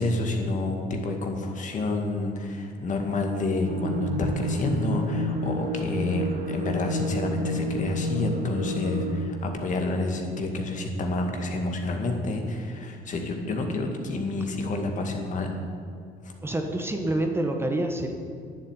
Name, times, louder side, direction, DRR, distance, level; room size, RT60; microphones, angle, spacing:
voice 1, 0.0-15.5 16.2-16.3, left 2 dB, 50° left, 3 dB, 2.0 m, -29 dB
sound 1, 3.7-9.1, left 1 dB, 60° right, 2.1 m, -29 dB
voice 2, 16.4-18.1, right 1 dB, 15° right, 3 dB, 1.2 m, -27 dB
11.0 x 7.5 x 9.6 m, 2.4 s
cardioid pair, 110°, 17 cm